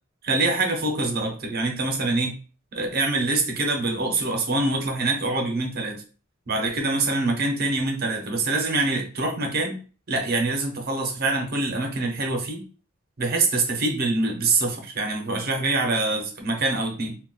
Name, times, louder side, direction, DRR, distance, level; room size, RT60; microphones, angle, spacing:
voice 1, 0.2-2.4 2.7-6.0 6.5-9.8 10.1-12.6 13.2-17.2, right 2 dB, 45° right, 3 dB, 0.7 m, -25 dB
2.3 x 2.2 x 3.8 m, 0.37 s
head